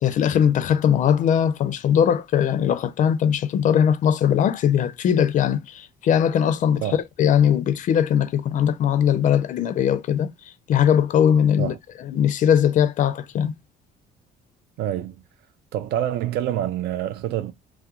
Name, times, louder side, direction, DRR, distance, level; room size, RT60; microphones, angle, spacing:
voice 1, 0.0-6.8 7.2-10.3 10.7-11.7 12.0-13.5, left 9 dB, 50° left, 0.4 m, -20 dB
voice 2, 14.8-15.2 15.7-17.5, right 11 dB, 75° right, 0.4 m, -26 dB
2.3 x 2.1 x 2.8 m
cardioid pair, 110°, 17 cm